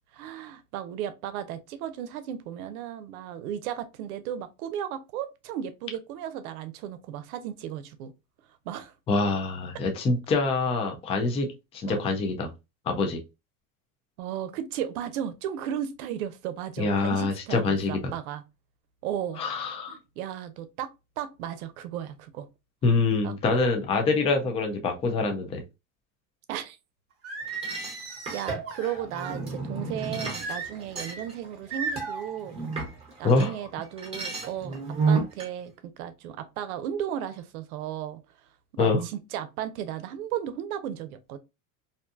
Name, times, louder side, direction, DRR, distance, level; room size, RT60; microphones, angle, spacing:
voice 1, 0.1-8.1 8.6-8.9 11.9-12.0 14.2-18.4 19.0-19.4 19.9-22.5 23.2-23.8 24.2-24.5 26.5-26.8 28.3-32.6 33.2-34.8 35.1-38.2 38.8-41.4, right 10 dB, 80° right, 0.6 m, -35 dB
voice 2, 9.1-12.5 12.9-13.2 16.8-18.1 19.4-20.0 22.8-25.6 33.2-33.5 38.8-39.0, left 3 dB, 15° left, 0.3 m, -25 dB
Singing, 27.2-29.4 30.4-31.2 31.7-32.2, right 4 dB, 35° right, 1.2 m, -36 dB
sound 1, 27.5-33.5 33.8-35.5, right 4 dB, 15° right, 1.0 m, -32 dB
2.6 x 2.2 x 2.5 m
supercardioid pair, 125°, 42 cm